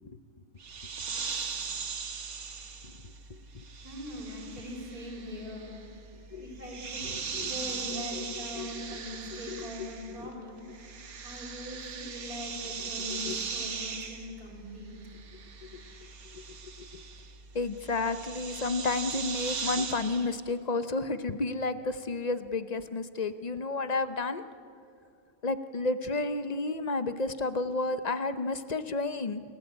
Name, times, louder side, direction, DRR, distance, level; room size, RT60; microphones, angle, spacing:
sound 1, 0.6-10.3 10.6-20.3, right 5 dB, 75° right, 1.8 m, -39 dB
voice 1, 3.3-3.6 6.3-6.5 7.0-7.5 8.1-8.2 8.5-9.0 9.3-10.3 13.1-13.4 15.6-17.0 17.5-24.4 25.4-29.4, left 3 dB, 35° left, 12 dB, 0.7 m, -32 dB
voice 2, 3.8-5.9 6.4-10.6 11.2-15.1, left 1 dB, 90° right, -1 dB, 6.3 m, -41 dB
28.5 x 17.0 x 8.7 m, 2.5 s
omnidirectional pair, 1.5 m